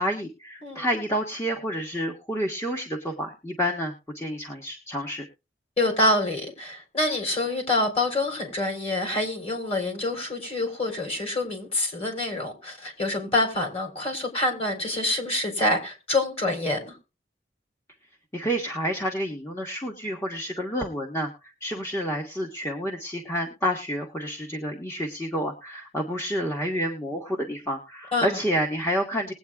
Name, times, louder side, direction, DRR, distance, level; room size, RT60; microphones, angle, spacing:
voice 1, 0.0-5.2 18.3-29.3, equal, 15° left, 1.3 m, -29 dB
voice 2, 5.8-16.9 28.1-28.4, left 2 dB, 35° left, 3.8 m, -26 dB
20.5 x 8.7 x 2.3 m
head